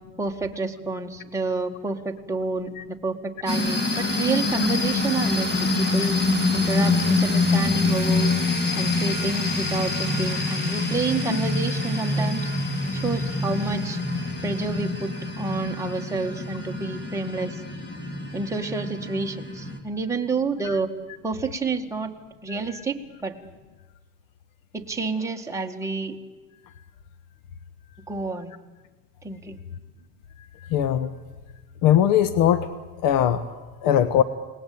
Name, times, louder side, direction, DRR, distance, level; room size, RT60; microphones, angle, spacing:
voice 1, 0.2-6.2 6.5-8.3 8.8-12.5 12.9-14.0 14.4-15.1 15.4-17.6 18.3-20.9 21.2-22.1 22.4-23.3 24.7-26.2 28.1-28.5 29.2-29.6, right 3 dB, 10° right, 1 dB, 2.0 m, -29 dB
sound 1, 3.5-19.8, left 2 dB, 25° left, 3.3 m, -25 dB
voice 2, 30.7-31.1 31.8-32.7 33.0-33.4 33.8-34.2, left 10 dB, 65° left, 12 dB, 1.4 m, -20 dB
29.5 x 20.0 x 8.8 m, 1.3 s
supercardioid pair, 135°, 37 cm